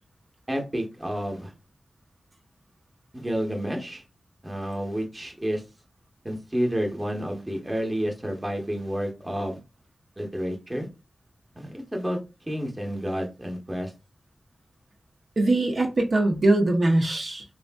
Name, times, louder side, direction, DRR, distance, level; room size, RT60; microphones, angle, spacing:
voice 1, 0.5-1.5 3.1-4.0 4.4-5.6 6.2-9.6 10.2-10.9 11.5-12.2 12.5-13.9, equal, 20° right, 0.8 m, -30 dB
voice 2, 15.4-17.4, right 2 dB, 60° right, 0.6 m, -22 dB
3.1 x 2.6 x 2.2 m
wide cardioid pair, 85°, 0 cm